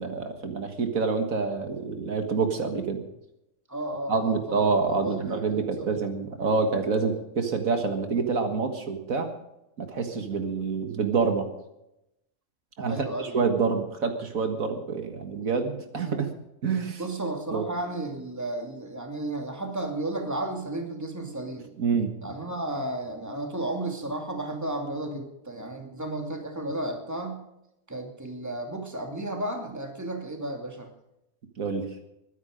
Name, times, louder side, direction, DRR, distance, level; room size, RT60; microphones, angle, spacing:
voice 1, 0.0-3.0 4.1-9.3 9.8-11.5 12.8-16.3 16.6-17.0 17.5-17.6 21.8-22.1 31.6-31.9, right 4 dB, 75° right, 6 dB, 2.0 m, -27 dB
voice 2, 3.7-6.1 12.8-13.4 17.0-21.7 22.2-27.4 27.9-30.9, right 1 dB, 10° right, 3 dB, 2.5 m, -33 dB
21.5 x 10.0 x 5.2 m, 0.86 s
omnidirectional pair, 1.4 m